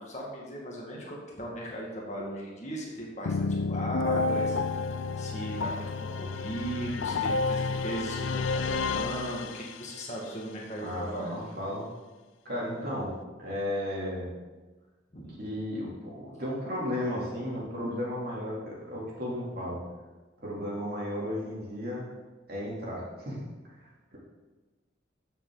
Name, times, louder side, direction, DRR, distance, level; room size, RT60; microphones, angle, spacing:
voice 1, 0.0-4.6 5.2-11.3 15.1-15.3, right 1 dB, 35° left, -3 dB, 2.0 m, -37 dB
sound 1, 3.2-10.0, left 4 dB, 85° left, 0.5 m, -30 dB
voice 2, 10.8-11.8 12.4-13.1 13.4-14.3 15.4-19.8 20.4-22.0 22.5-23.4 23.8-24.2, left 1 dB, 50° right, -5 dB, 3.4 m, -34 dB
14.0 x 6.9 x 4.1 m, 1.2 s
head